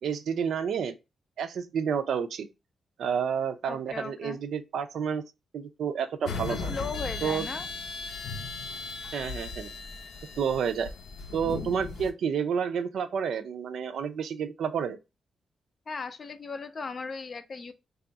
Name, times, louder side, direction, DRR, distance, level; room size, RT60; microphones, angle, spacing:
voice 1, 0.0-0.9 1.4-2.5 3.0-5.2 5.5-6.7 7.2-7.5 9.1-9.7 10.4-10.9 11.3-15.0, right 7 dB, 70° right, 0.5 m, -30 dB
voice 2, 3.7-4.4 6.5-7.7 15.9-17.7, left 4 dB, 35° left, 0.4 m, -37 dB
sound 1, 6.3-12.1, left 4 dB, 75° left, 0.6 m, -37 dB
3.4 x 2.4 x 3.8 m
wide cardioid pair, 165°, 0 cm